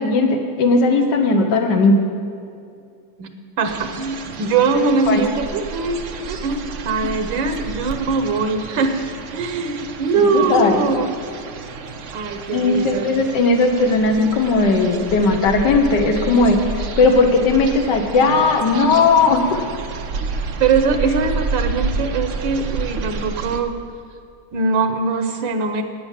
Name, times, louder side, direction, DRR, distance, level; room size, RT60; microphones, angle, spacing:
voice 1, 0.0-1.9 4.7-5.2 7.0-7.1 7.4-7.6 10.3-10.8 12.5-16.6 17.0-19.6, left 3 dB, 65° left, 3 dB, 1.8 m, -17 dB
voice 2, 3.2-6.0 6.3-11.1 12.1-13.1 20.6-23.7 24.5-25.8, right 4 dB, 90° right, 7 dB, 1.7 m, -21 dB
sound 1, 3.6-23.6, right 4 dB, 60° right, 0.8 m, -30 dB
11.5 x 9.7 x 7.5 m, 2.4 s
omnidirectional pair, 2.0 m